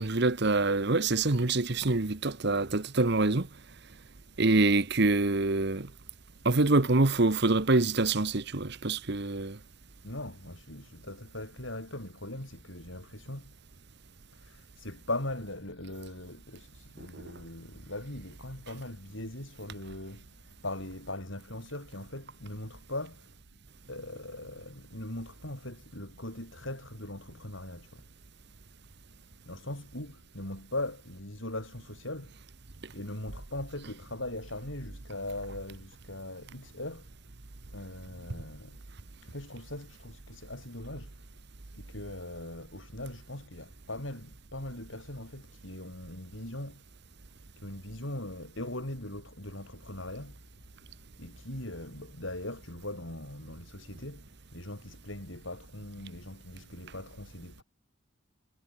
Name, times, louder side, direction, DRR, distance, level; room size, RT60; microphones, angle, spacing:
voice 1, 0.0-3.5 4.4-5.9 6.4-9.6 17.0-17.2, right 2 dB, 55° right, 1.1 m, -25 dB
voice 2, 10.0-13.5 14.3-23.6 23.9-28.0 29.4-32.4 32.9-37.1 37.7-38.8 39.2-41.3 41.7-46.8 47.6-50.4 51.2-57.6, left 1 dB, 65° left, 6.7 m, -40 dB
head